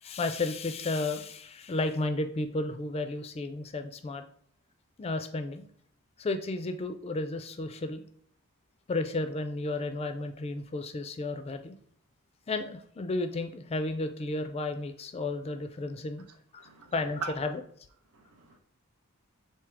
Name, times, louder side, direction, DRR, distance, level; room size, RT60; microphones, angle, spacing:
voice 1, 0.0-4.2 5.0-5.7 6.2-8.0 8.9-11.7 12.5-16.2 16.5-16.6 16.9-17.6, left 2 dB, 25° left, 0.3 m, -33 dB
voice 2, 16.6-16.9 17.2-17.4 18.1-18.6, right 5 dB, 90° right, 0.8 m, -39 dB
3.5 x 2.7 x 4.6 m
head